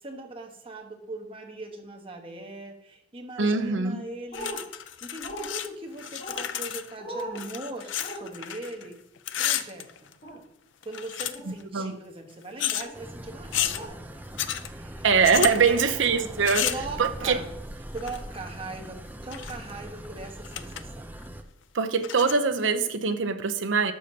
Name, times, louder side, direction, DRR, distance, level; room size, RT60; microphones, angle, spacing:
voice 1, 0.0-4.6 5.0-9.0 9.4-10.1 10.8-15.0 15.5-15.9 16.2-16.3 16.6-17.5 17.9-21.1, right 2 dB, 30° right, 1.3 m, -40 dB
voice 2, 3.4-4.0 11.7-12.0 15.0-16.6 17.0-17.4 21.7-23.9, right 5 dB, 80° right, 0.7 m, -23 dB
sound 1, 4.3-5.7 5.9-8.9 9.2-10.4 10.8-11.6 12.6-12.9 13.5-13.8 14.4-14.7 15.2-15.6 16.4-16.9 18.0-18.4 19.1-19.7 20.0-20.1 20.4-20.8 21.2-21.3 22.0-22.4, left 11 dB, 70° left, 0.5 m, -31 dB
sound 2, 4.3-4.6 5.2-5.5 6.2-6.4 7.0-7.4 8.0-8.2 10.2-10.4 11.3-11.5 12.8-13.0 13.8-13.9, right 1 dB, 50° left, 2.4 m, -37 dB
sound 3, 12.9-21.4, right 1 dB, 10° right, 0.6 m, -41 dB
12.0 x 6.5 x 2.8 m
head